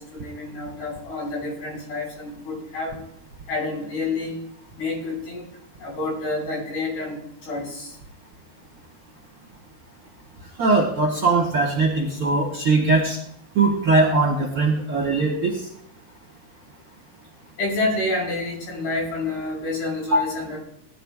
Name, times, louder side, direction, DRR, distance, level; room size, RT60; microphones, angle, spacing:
voice 1, 0.0-3.0 3.5-4.4 4.8-5.4 5.8-7.2 7.5-7.9 17.6-20.6, left 2 dB, 70° left, -3 dB, 7.5 m, -28 dB
voice 2, 10.6-13.2 13.5-15.6 20.1-20.3, right 3 dB, 45° right, -2 dB, 2.0 m, -20 dB
19.5 x 11.5 x 2.5 m, 0.70 s
omnidirectional pair, 4.7 m